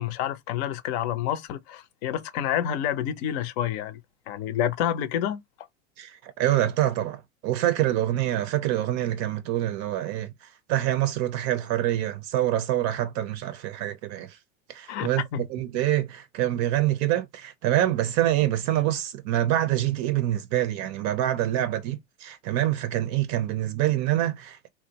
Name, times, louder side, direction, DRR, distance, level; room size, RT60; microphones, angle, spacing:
voice 1, 0.0-4.0 4.3-5.7 14.9-15.4, left 10 dB, 60° left, 0.6 m, -29 dB
voice 2, 6.0-10.3 10.7-14.4 14.7-24.7, right 13 dB, 45° right, 0.5 m, -26 dB
2.5 x 2.1 x 2.7 m
hypercardioid pair, 100°, 37 cm